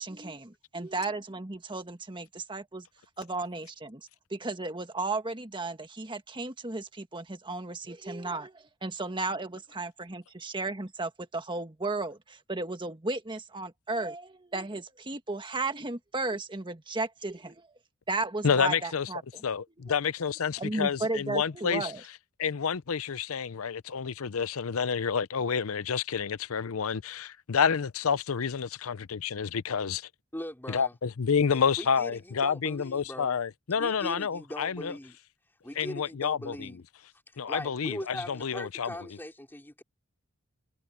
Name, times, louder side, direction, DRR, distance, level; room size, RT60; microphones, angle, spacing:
voice 1, 0.0-2.9 3.2-4.0 4.3-17.7 18.1-19.4 20.6-22.0, right 3 dB, 20° right, 1.5 m, -34 dB
voice 2, 18.4-19.1 19.4-21.9 22.4-30.1 30.7-34.9 35.8-36.7 37.4-38.9, left 6 dB, 70° left, 0.6 m, -29 dB
voice 3, 30.3-30.9 31.5-33.4 33.8-35.2 35.6-36.8 37.5-39.8, left 1 dB, 10° left, 3.3 m, -40 dB
head